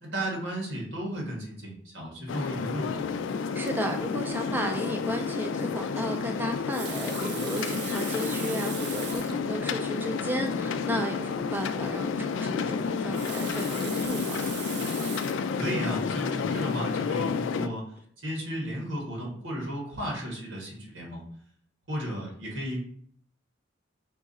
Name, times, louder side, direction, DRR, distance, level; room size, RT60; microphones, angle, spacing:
voice 1, 0.0-3.2 15.6-17.9 18.2-21.3 21.9-22.9, equal, 85° right, -1 dB, 1.5 m, -34 dB
sound 1, 2.3-17.7, left 5 dB, 75° left, 0.3 m, -30 dB
voice 2, 3.5-14.4, equal, 10° right, 3 dB, 0.4 m, -34 dB
Water tap faucet, 6.5-9.4 10.2-10.3 10.6-10.7 12.9-15.5 16.2-16.4, right 7 dB, 60° right, 0.5 m, -40 dB
4.6 x 2.4 x 4.1 m, 0.64 s
head